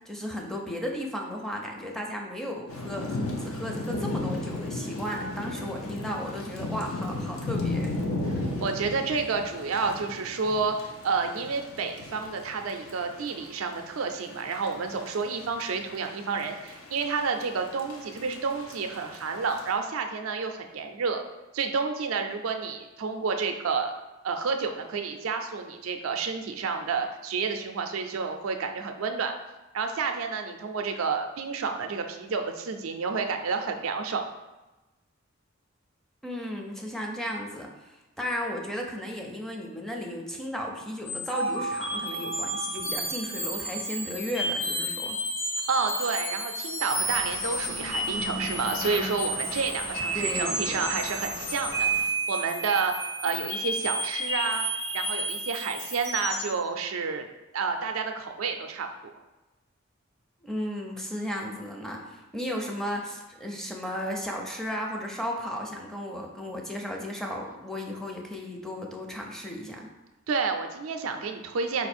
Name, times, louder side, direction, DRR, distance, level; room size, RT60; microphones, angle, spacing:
voice 1, 0.1-7.9 36.2-45.2 50.1-51.0 60.4-69.9, equal, ahead, 0 dB, 0.4 m, -35 dB
Thunder / Rain, 2.7-19.7, left 2 dB, 85° left, 0.6 m, -36 dB
voice 2, 8.6-21.2 21.5-23.9 24.2-29.3 29.7-34.2 45.7-52.9 53.2-54.6 54.9-57.3 57.5-59.1 70.3-71.9, right 5 dB, 90° right, 5 dB, 0.4 m, -30 dB
sound 1, 41.1-56.5, right 1 dB, 65° left, 1.5 m, -31 dB
sound 2, 46.9-52.0, left 1 dB, 45° left, 0.6 m, -41 dB
4.3 x 2.4 x 4.2 m, 1.1 s
head